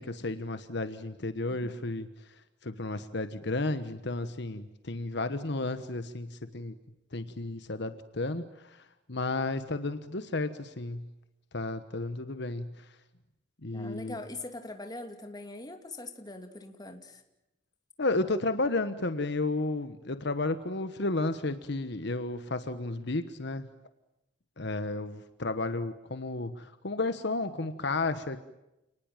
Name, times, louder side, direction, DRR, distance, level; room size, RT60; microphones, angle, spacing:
voice 1, 0.0-2.1 2.6-6.7 7.1-11.1 11.5-12.9 13.6-14.2 18.0-23.7 24.6-28.4, left 2 dB, 60° left, 11 dB, 1.3 m, -32 dB
voice 2, 13.7-17.2, left 2 dB, 20° left, 6 dB, 2.7 m, -42 dB
29.5 x 20.0 x 9.0 m, 0.92 s
head